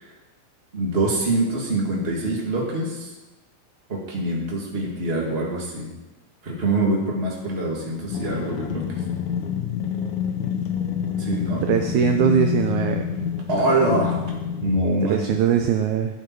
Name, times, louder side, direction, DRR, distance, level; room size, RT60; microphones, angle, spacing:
voice 1, 0.7-3.1 3.9-5.9 6.4-8.9 11.2-11.6 13.5-14.2 14.6-15.2, right 2 dB, 20° right, -3 dB, 1.9 m, -24 dB
sound 1, 8.1-14.8, left 8 dB, 70° left, 2.2 m, -27 dB
voice 2, 11.6-13.1 15.1-16.2, right 8 dB, 80° right, 6 dB, 1.7 m, -21 dB
14.5 x 7.9 x 4.7 m, 1.1 s
omnidirectional pair, 4.1 m